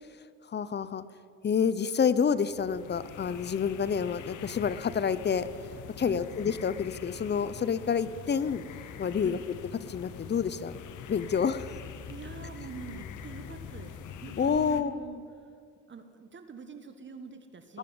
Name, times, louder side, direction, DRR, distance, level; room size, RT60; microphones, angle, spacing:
voice 1, 0.5-1.0 1.4-5.5 6.0-8.6 9.0-9.4 9.9-10.7 11.1-11.7 14.4-15.0, left 6 dB, 35° left, 15 dB, 0.7 m, -28 dB
sound 1, 2.1-14.8, left 8 dB, 80° left, 1.0 m, -44 dB
voice 2, 12.1-15.2 15.9-17.8, right 5 dB, 40° right, 8 dB, 1.2 m, -45 dB
20.0 x 7.1 x 9.5 m, 2.3 s
cardioid pair, 90°, 30 cm